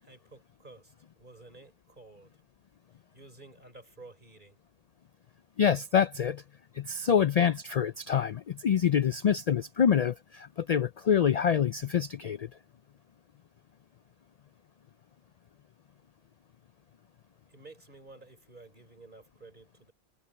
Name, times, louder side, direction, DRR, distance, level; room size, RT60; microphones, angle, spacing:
voice 1, 0.0-2.4 3.1-4.6 17.5-19.9, right 3 dB, 45° right, 4.1 m, -52 dB
voice 2, 5.6-6.4 6.7-12.5, left 8 dB, 55° left, 0.4 m, -26 dB
omnidirectional pair, 1.1 m